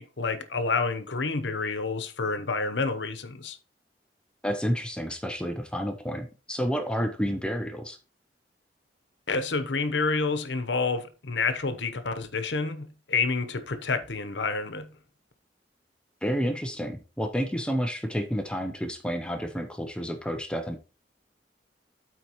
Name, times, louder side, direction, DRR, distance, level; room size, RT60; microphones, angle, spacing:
voice 1, 0.0-3.6 9.3-14.9, left 4 dB, 90° left, 0.9 m, -29 dB
voice 2, 4.4-8.0 16.2-20.8, equal, 5° left, 0.6 m, -30 dB
12.5 x 4.4 x 3.0 m
head